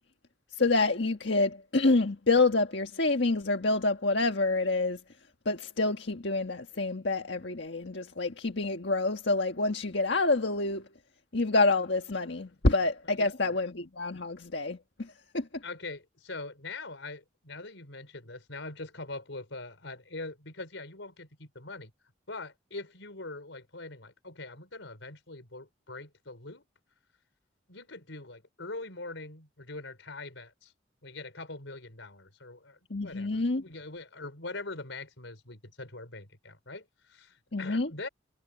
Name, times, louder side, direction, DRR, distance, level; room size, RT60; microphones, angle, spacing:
voice 1, 0.5-5.0 5.4-10.9 11.3-15.6 32.9-33.6 37.5-37.9, left 3 dB, 70° left, 1.5 m, -27 dB
voice 2, 15.6-21.9 22.3-26.6 27.7-30.7 31.0-38.1, left 3 dB, 85° left, 4.8 m, -43 dB
head